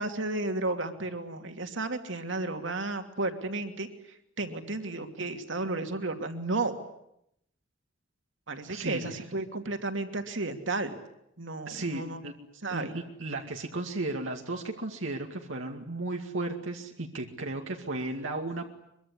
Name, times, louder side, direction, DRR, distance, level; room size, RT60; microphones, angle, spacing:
voice 1, 0.0-3.9 4.4-6.8 8.5-10.9 11.4-12.2 12.6-13.0, right 2 dB, 70° right, 6 dB, 2.8 m, -33 dB
voice 2, 8.7-9.2 11.7-12.3 12.7-18.7, right 2 dB, 85° right, 2 dB, 2.3 m, -35 dB
24.5 x 23.5 x 9.8 m, 0.77 s
head